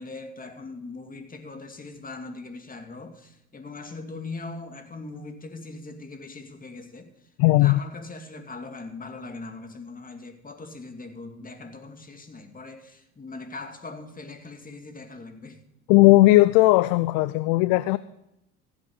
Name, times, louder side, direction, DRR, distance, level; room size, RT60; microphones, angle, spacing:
voice 1, 0.0-7.1 7.5-15.6, left 3 dB, 25° left, 6 dB, 2.3 m, -40 dB
voice 2, 7.4-7.8 15.9-18.0, left 18 dB, 65° left, 16 dB, 0.5 m, -17 dB
15.5 x 8.1 x 5.4 m, 0.84 s
hypercardioid pair, 65°, 34 cm